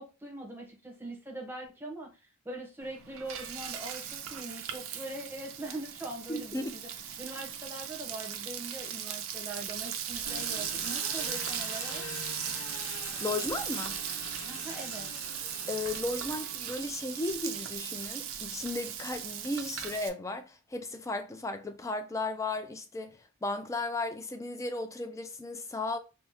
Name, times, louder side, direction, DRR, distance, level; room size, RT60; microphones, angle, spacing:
voice 1, 0.0-6.9 7.2-12.0 14.4-15.1, right 1 dB, 10° right, 0.8 m, -42 dB
Frying (food), 2.8-20.1, right 9 dB, 70° right, 0.5 m, -38 dB
voice 2, 6.3-6.8 13.2-14.0 15.7-26.0, left 2 dB, 15° left, 0.3 m, -35 dB
Engine, 10.3-16.8, left 4 dB, 70° left, 0.6 m, -45 dB
3.4 x 2.0 x 2.9 m
head